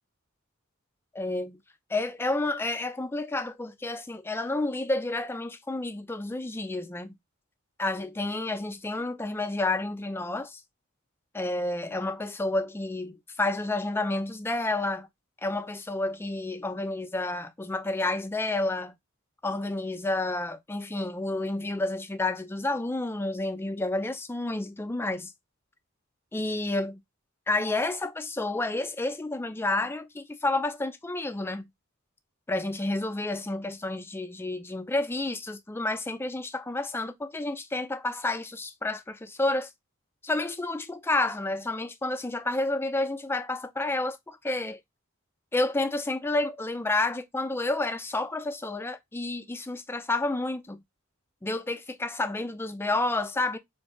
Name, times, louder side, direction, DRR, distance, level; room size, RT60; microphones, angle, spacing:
voice 1, 1.1-1.6 1.9-7.1 7.8-10.6 11.3-15.1 15.4-18.9 19.4-25.3 26.3-27.0 27.5-31.6 32.5-39.7 40.2-44.8 45.5-50.8 51.4-53.6, left 2 dB, 10° left, 0.3 m, -30 dB
4.8 x 2.6 x 2.3 m
head